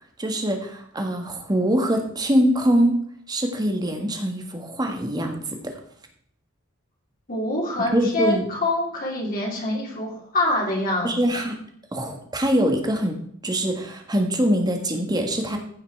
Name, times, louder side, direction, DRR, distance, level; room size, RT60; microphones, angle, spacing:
voice 1, 0.2-2.9 3.3-5.7 7.9-8.4 11.0-11.5 11.9-13.2 13.4-15.6, equal, 20° right, 4 dB, 1.6 m, -23 dB
voice 2, 7.3-11.1, left 1 dB, 45° left, -3 dB, 3.0 m, -25 dB
15.5 x 5.7 x 4.7 m, 0.66 s
head